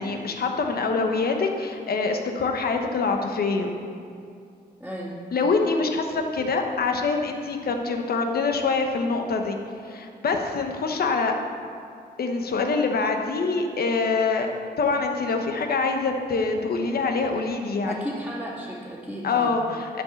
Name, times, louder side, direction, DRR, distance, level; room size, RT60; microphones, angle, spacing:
voice 1, 0.0-3.7 5.3-9.6 9.8-11.3 12.2-14.5 14.8-17.9 19.2-20.0, left 4 dB, 65° left, 4 dB, 1.1 m, -25 dB
voice 2, 4.8-5.1 17.9-19.5, equal, ahead, -10 dB, 2.1 m, -34 dB
11.0 x 4.9 x 7.2 m, 2.4 s
cardioid pair, 80°, 17 cm